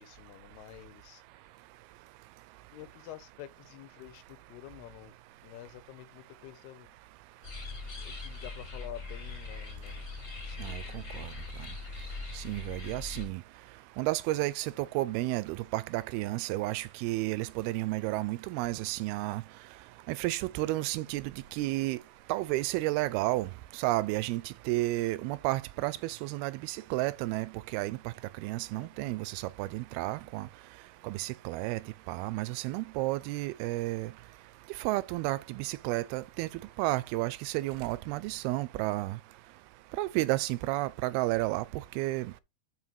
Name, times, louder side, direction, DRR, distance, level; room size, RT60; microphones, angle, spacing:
voice 1, 0.0-1.5 2.7-5.1 5.4-7.0 8.0-10.1 10.4-11.3 28.7-29.1, left 13 dB, 85° left, 2.9 m, -49 dB
sound 1, 7.4-13.3, left 3 dB, 30° left, 1.8 m, -41 dB
voice 2, 10.6-11.3 12.3-13.4 14.0-19.4 20.1-22.0 22.3-23.5 23.8-30.5 31.0-31.8 32.1-34.1 34.8-36.5 36.8-39.2 40.0-41.7 42.0-42.3, right 18 dB, 85° right, 2.5 m, -32 dB
5.6 x 5.5 x 4.6 m
omnidirectional pair, 4.4 m